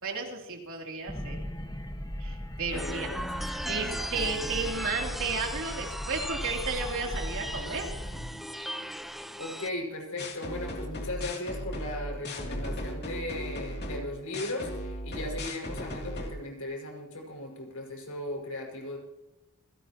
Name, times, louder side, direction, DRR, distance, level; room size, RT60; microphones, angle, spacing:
voice 1, 0.0-1.5 2.2-3.1 3.7-8.5, right 4 dB, 65° right, 0 dB, 3.3 m, -33 dB
sound 1, 1.1-8.2, equal, 20° left, 1.4 m, -38 dB
voice 2, 2.7-3.5 9.4-19.0, left 1 dB, 70° left, 0 dB, 5.8 m, -37 dB
sound 2, 2.7-9.7, equal, ahead, 0.7 m, -38 dB
sound 3, 10.2-16.3, left 1 dB, 50° left, 3.0 m, -36 dB
27.0 x 17.5 x 3.0 m, 0.97 s
head